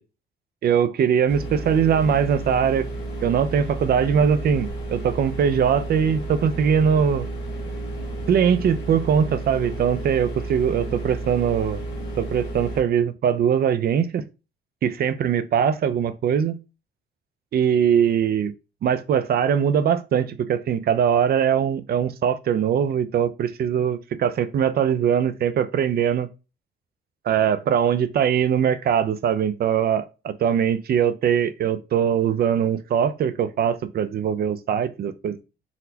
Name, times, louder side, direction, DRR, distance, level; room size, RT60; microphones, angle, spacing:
voice 1, 0.6-2.9 3.2-7.3 8.3-11.8 12.2-14.2 14.8-16.6 17.5-18.5 18.8-26.3 27.3-35.4, right 8 dB, 50° right, 0.5 m, -21 dB
sound 1, 1.3-12.8, right 2 dB, 60° left, 1.5 m, -32 dB
4.0 x 2.1 x 2.8 m
cardioid pair, 90°, 20 cm